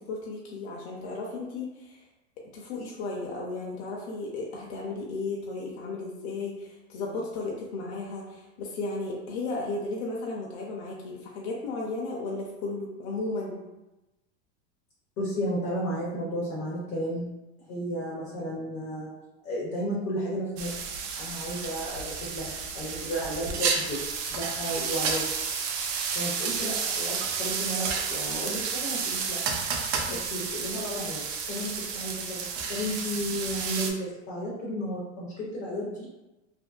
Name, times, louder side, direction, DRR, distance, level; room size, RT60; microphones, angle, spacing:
voice 1, 0.0-2.0 2.5-13.6 30.1-30.2, left 3 dB, 70° left, -2 dB, 0.6 m, -34 dB
voice 2, 15.2-17.3 17.7-19.1 19.4-20.7 21.1-24.0 24.3-25.2 26.1-29.4 30.1-31.2 31.5-36.1, equal, 25° left, -5 dB, 0.4 m, -33 dB
sound 1, 20.6-33.9, right 5 dB, 70° right, 0.5 m, -31 dB
2.6 x 2.5 x 2.3 m, 1.0 s
supercardioid pair, 160°, 33 cm